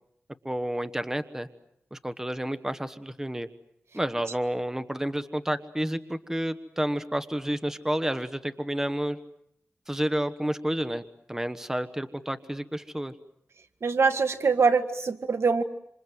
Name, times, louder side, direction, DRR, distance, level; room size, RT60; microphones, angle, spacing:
voice 1, 0.4-1.5 1.9-3.5 3.9-9.2 9.9-11.0 11.3-13.1, right 1 dB, 10° right, 11 dB, 1.2 m, -30 dB
voice 2, 13.8-15.6, right 4 dB, 75° right, 9 dB, 1.8 m, -23 dB
27.0 x 27.0 x 7.8 m, 0.75 s
wide cardioid pair, 100°, 4 cm